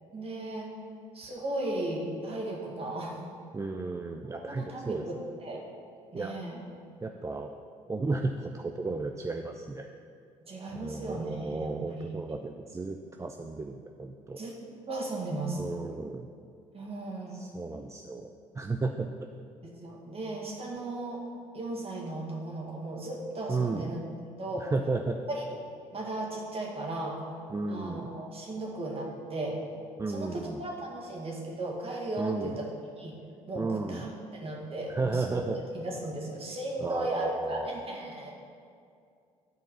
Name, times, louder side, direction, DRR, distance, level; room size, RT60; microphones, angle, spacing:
voice 1, 0.1-0.7 1.1-3.3 4.3-5.7 6.1-6.6 10.5-12.1 14.4-14.6 14.9-15.6 16.7-17.5 19.6-21.2 21.5-24.0 24.4-24.7 25.3-25.4 25.9-27.2 27.7-29.6 30.1-32.7 33.0-33.2 33.5-34.1 34.3-35.4 35.7-38.3, right 2 dB, 35° right, -1 dB, 2.1 m, -36 dB
voice 2, 3.5-5.2 6.1-6.3 7.0-7.5 7.9-9.9 10.7-14.4 15.6-16.3 17.3-18.3 18.5-19.1 23.5-23.9 24.6-25.2 27.5-28.1 30.0-30.6 32.2-32.6 33.6-34.0 34.9-35.6 36.8-37.8, right 3 dB, 15° right, 4 dB, 0.5 m, -33 dB
11.0 x 4.5 x 5.7 m, 2.4 s
hypercardioid pair, 55°, 17 cm